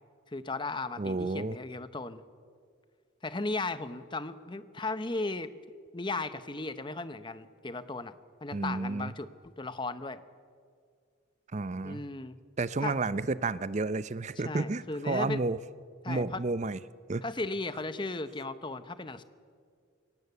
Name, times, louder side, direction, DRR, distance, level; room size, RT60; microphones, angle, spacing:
voice 1, 0.3-2.2 3.2-5.5 5.9-8.1 8.4-10.2 11.8-12.4 12.8-13.0 14.4-15.4 16.0-16.4 17.2-19.2, left 3 dB, 25° left, 12 dB, 0.7 m, -36 dB
voice 2, 1.0-1.6 8.5-9.1 11.5-12.0 12.6-15.6 16.1-16.8 17.1-17.2, right 3 dB, 35° right, 16 dB, 0.5 m, -31 dB
22.0 x 18.0 x 8.2 m, 2.1 s
head